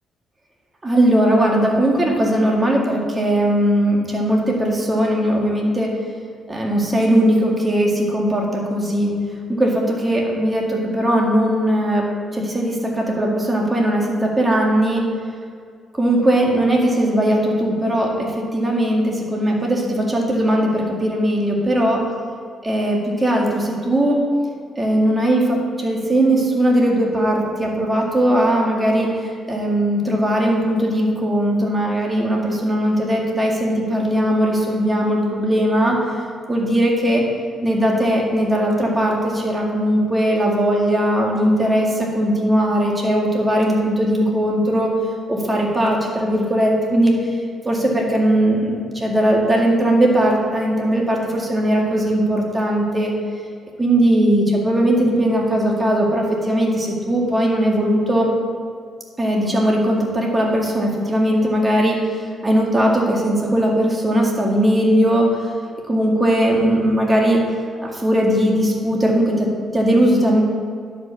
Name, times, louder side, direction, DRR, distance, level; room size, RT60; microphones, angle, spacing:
voice 1, 0.8-5.9 6.5-9.1 9.5-12.1 12.3-15.0 15.9-22.0 22.6-24.2 24.8-29.1 29.5-36.0 36.5-37.2 37.6-44.9 45.3-47.1 47.7-53.1 53.8-58.3 59.2-62.0 62.4-65.3 65.9-67.4 67.8-70.4, right 1 dB, 20° right, -1 dB, 2.0 m, -19 dB
10.5 x 5.3 x 6.9 m, 2.2 s
cardioid pair, 90°, 0 cm